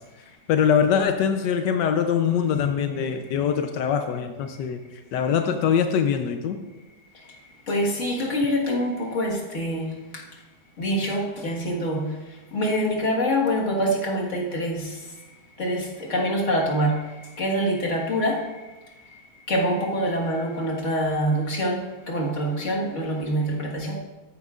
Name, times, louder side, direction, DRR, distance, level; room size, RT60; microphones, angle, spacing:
voice 1, 0.5-4.8 5.1-6.6, left 7 dB, 85° left, 6 dB, 1.3 m, -23 dB
voice 2, 7.7-10.2 10.8-15.3 15.6-18.6 19.0-19.2 19.5-24.0, equal, 45° left, -2 dB, 1.9 m, -26 dB
14.5 x 9.5 x 2.5 m, 1.1 s
omnidirectional pair, 1.8 m